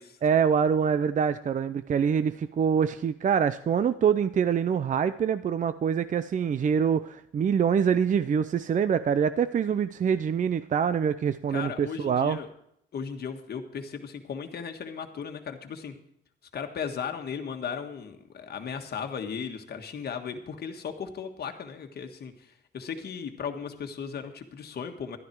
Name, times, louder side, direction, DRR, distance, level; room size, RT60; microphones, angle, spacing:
voice 1, 0.2-12.4, right 7 dB, 40° right, 13 dB, 0.5 m, -25 dB
voice 2, 11.5-12.5 12.9-15.9 16.5-25.2, left 6 dB, 55° left, 5 dB, 1.5 m, -36 dB
12.0 x 10.5 x 4.6 m, 0.74 s
cardioid pair, 90°, 20 cm